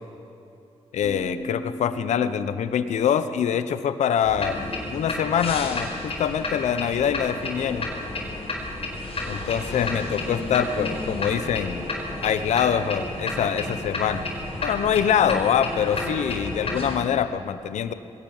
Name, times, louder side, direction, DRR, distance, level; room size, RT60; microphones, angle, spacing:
voice 1, 0.9-7.9 9.3-11.9 12.2-14.3 14.6-17.9, left 8 dB, 90° left, 12 dB, 0.9 m, -24 dB
sound 1, 1.0-4.9, equal, 5° right, 6.0 m, -41 dB
sound 2, 4.2-17.0, left 2 dB, 55° left, 5.0 m, -31 dB
sound 3, 9.6-17.0, right 2 dB, 35° right, 1.7 m, -43 dB
21.0 x 18.0 x 7.2 m, 2.7 s
cardioid pair, 70°, 12 cm